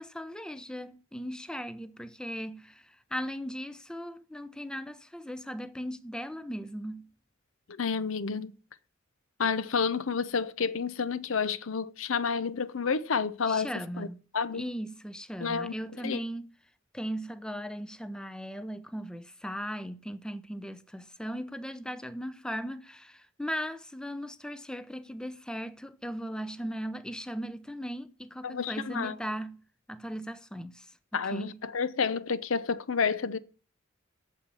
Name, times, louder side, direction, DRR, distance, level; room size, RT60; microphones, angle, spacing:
voice 1, 0.0-7.1 13.5-14.2 14.5-16.5 16.9-30.9 31.1-31.6, equal, 5° left, 0.5 m, -38 dB
voice 2, 7.7-8.5 9.4-13.7 14.0-14.1 14.3-14.6 15.4-15.7 16.0-16.2 28.4-29.2 31.1-33.4, left 5 dB, 80° left, 0.7 m, -30 dB
8.5 x 7.2 x 8.2 m
head